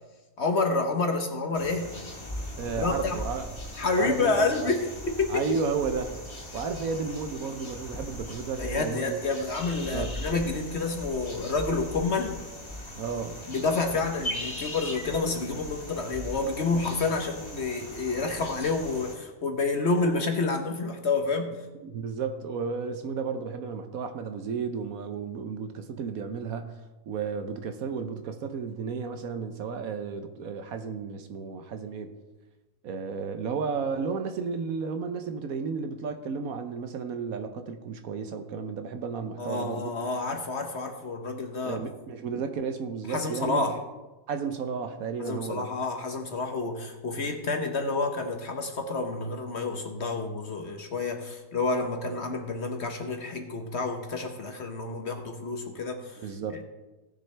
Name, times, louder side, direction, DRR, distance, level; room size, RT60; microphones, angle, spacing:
voice 1, 0.4-1.9 2.8-3.2 3.8-5.4 8.6-12.4 13.5-21.5 39.4-41.8 43.1-43.7 45.2-56.2, left 3 dB, 45° left, 4 dB, 1.1 m, -29 dB
sound 1, 1.5-19.1, left 1 dB, 20° left, 1.4 m, -39 dB
voice 2, 2.6-3.5 4.0-4.7 5.3-6.2 6.5-9.2 9.9-10.1 12.9-13.4 21.8-26.8 27.1-32.1 32.8-39.9 41.6-43.7 44.3-45.7 56.2-56.6, right 5 dB, 65° right, 7 dB, 1.1 m, -33 dB
17.5 x 6.7 x 3.3 m, 1.1 s
omnidirectional pair, 1.7 m